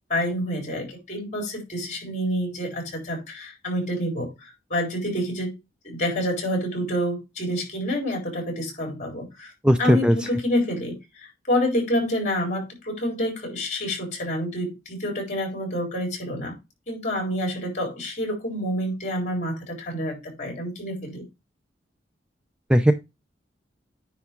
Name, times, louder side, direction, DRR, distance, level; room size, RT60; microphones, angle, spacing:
voice 1, 0.1-5.5 5.8-9.5 9.8-16.5 16.9-21.2, equal, 45° left, 4.0 m, -28 dB
voice 2, 9.6-10.2 22.7-22.9, equal, 5° right, 0.4 m, -17 dB
9.6 x 3.5 x 4.4 m
head